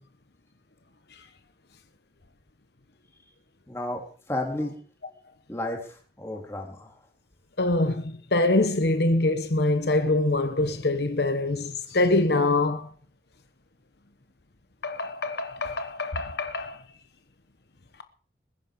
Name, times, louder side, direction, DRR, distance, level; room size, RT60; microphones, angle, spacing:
voice 1, 3.7-4.0 4.3-4.8 5.5-7.0, left 1 dB, 15° left, 3.5 m, -32 dB
voice 2, 7.6-12.9 14.8-16.8, left 2 dB, 70° left, 1.1 m, -24 dB
20.5 x 10.5 x 5.2 m
head